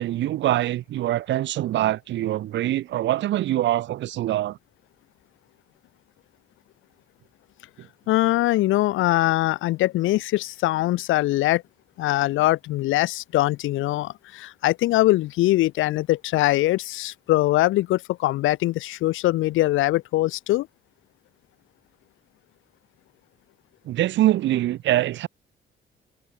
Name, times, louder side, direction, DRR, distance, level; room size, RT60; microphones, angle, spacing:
voice 1, 0.0-4.6 23.9-25.3, right 14 dB, 70° right, 0.6 m, -24 dB
voice 2, 8.1-11.6 12.0-20.7, left 17 dB, 90° left, 0.8 m, -22 dB
cardioid pair, 90°, 20 cm